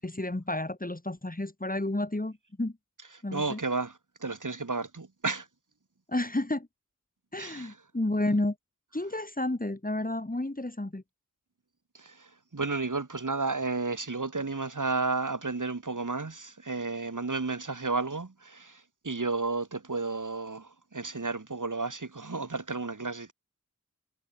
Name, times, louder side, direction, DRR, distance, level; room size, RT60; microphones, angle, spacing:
voice 1, 0.0-2.7 3.2-3.6 6.1-6.7 7.3-8.6 8.9-11.0, left 1 dB, 25° left, 3.5 m, -31 dB
voice 2, 3.3-5.5 7.4-7.8 11.9-23.3, right 3 dB, 65° right, 5.9 m, -32 dB
wide cardioid pair, 50°, 33 cm